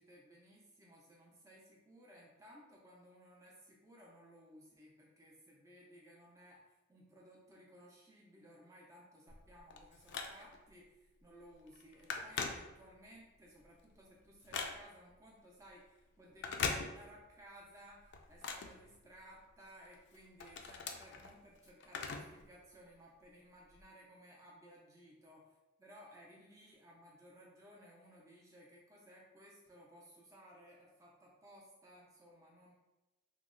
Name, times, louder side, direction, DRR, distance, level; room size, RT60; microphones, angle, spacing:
voice 1, 0.0-25.5 25.8-32.7, equal, 15° right, -4 dB, 0.4 m, -59 dB
Telephone, 9.3-10.7 11.2-11.4 11.7-13.2 13.6-15.1 16.3-17.4 17.7-19.5 19.9-22.4 22.7-22.8 23.7-23.8, left 5 dB, 55° left, 0.3 m, -42 dB
3.0 x 2.0 x 3.6 m, 1.0 s
head